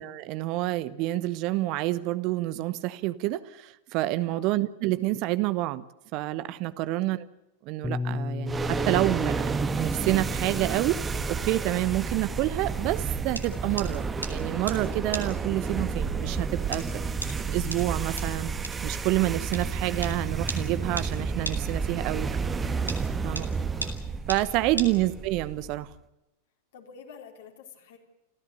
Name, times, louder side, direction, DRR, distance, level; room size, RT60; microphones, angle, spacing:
voice 1, 0.0-5.8 6.1-7.3 7.6-9.5 9.8-16.8 17.5-18.5 18.8-22.3 23.2-23.5 24.3-25.9, right 16 dB, 40° right, 15 dB, 1.0 m, -28 dB
voice 2, 6.9-7.2 16.9-17.2 21.9-22.7 23.1-23.5 24.8-25.0 26.7-28.0, left 7 dB, 60° left, 2 dB, 4.3 m, -50 dB
Bass guitar, 7.8-14.1, left 3 dB, 10° left, 0.8 m, -37 dB
sound 1, 8.5-25.8, right 5 dB, 15° right, 1.5 m, -31 dB
sound 2, 11.6-25.5, right 1 dB, 90° right, 2.6 m, -40 dB
28.5 x 15.0 x 6.8 m, 0.94 s
figure-of-eight pair, 90°, 0 cm